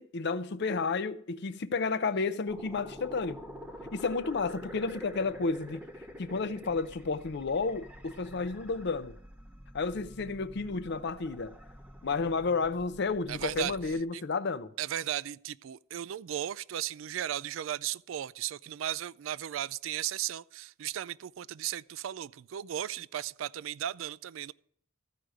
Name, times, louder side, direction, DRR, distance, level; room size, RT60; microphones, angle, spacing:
voice 1, 0.0-3.4 3.9-5.8 6.2-9.2 9.7-11.6 12.0-14.7, left 4 dB, 60° left, 0.5 m, -31 dB
sound 1, 2.5-14.0, equal, 5° right, 0.8 m, -47 dB
voice 2, 13.3-13.8 14.1-14.2 14.8-24.5, right 11 dB, 75° right, 0.3 m, -36 dB
14.0 x 4.9 x 7.8 m
head